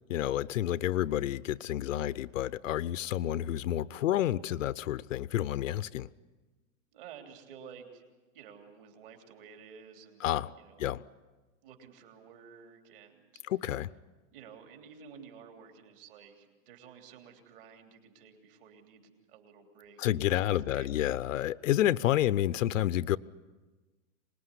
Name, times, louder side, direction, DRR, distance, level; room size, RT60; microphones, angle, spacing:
voice 1, 0.1-6.1 10.2-10.5 10.8-11.0 13.5-13.9 20.0-23.2, left 13 dB, 70° left, 0.7 m, -29 dB
voice 2, 6.9-8.0 8.3-10.9 11.6-13.4 14.3-21.4 22.0-22.3, right 7 dB, 40° right, 3.3 m, -53 dB
25.5 x 20.0 x 9.9 m
supercardioid pair, 175°, 40 cm